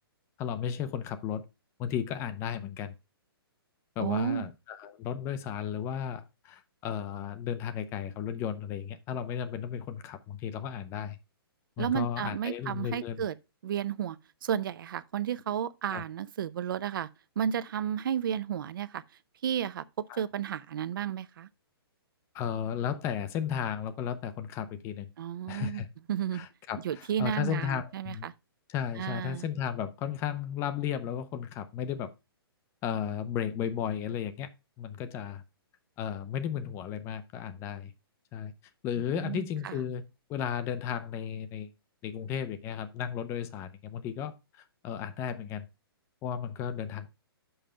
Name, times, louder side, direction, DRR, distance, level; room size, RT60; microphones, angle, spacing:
voice 1, 0.4-1.5 1.8-2.9 4.0-11.2 11.8-13.2 15.9-16.0 20.1-20.2 22.3-25.1 25.5-25.9 26.3-28.3 28.7-32.1 32.8-34.5 34.8-35.4 36.0-37.9 38.3-38.5 38.8-40.0 40.3-41.7 42.0-45.7 46.2-47.1, left 9 dB, 20° left, 0.6 m, -34 dB
voice 2, 4.0-4.5 11.8-13.3 13.6-14.2 14.4-17.1 17.4-19.0 19.4-21.5 25.2-25.8 26.1-26.5 26.8-28.3 29.0-29.5 39.2-39.8, right 9 dB, 60° right, 0.5 m, -32 dB
5.6 x 5.5 x 5.0 m
hypercardioid pair, 150°, 13 cm